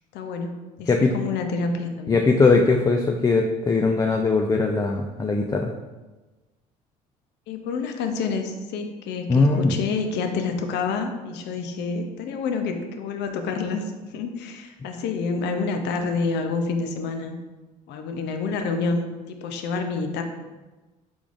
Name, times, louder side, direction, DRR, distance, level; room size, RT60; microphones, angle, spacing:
voice 1, 0.1-2.2 7.5-13.8 14.1-17.4 17.9-20.2, left 4 dB, 65° left, 6 dB, 0.6 m, -28 dB
voice 2, 2.1-5.7 9.3-9.7, left 3 dB, 20° left, 2 dB, 0.3 m, -20 dB
4.6 x 3.6 x 2.5 m, 1.2 s
hypercardioid pair, 60°, 19 cm